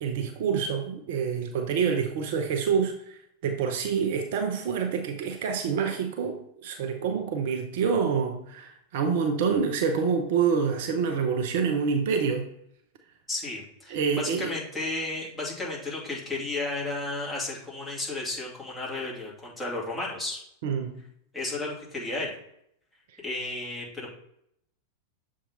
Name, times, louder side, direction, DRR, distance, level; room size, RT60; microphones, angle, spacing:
voice 1, 0.0-12.5 13.9-14.5 20.6-20.9, right 6 dB, 50° right, 5 dB, 0.7 m, -27 dB
voice 2, 13.3-20.4 21.3-22.3 23.2-24.1, left 2 dB, 15° left, -5 dB, 2.5 m, -33 dB
7.0 x 3.6 x 4.1 m, 0.75 s
figure-of-eight pair, 90°, 0 cm